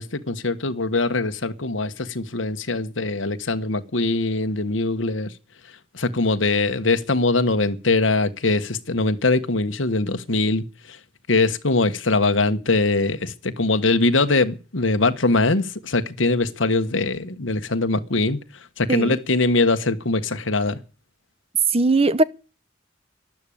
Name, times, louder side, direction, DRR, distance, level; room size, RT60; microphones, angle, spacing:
voice 1, 0.0-5.3 5.9-11.0 11.3-18.4 18.8-20.8, left 3 dB, 75° left, 1.4 m, -22 dB
voice 2, 21.7-22.2, right 2 dB, 30° right, 0.8 m, -19 dB
12.5 x 12.0 x 8.6 m
head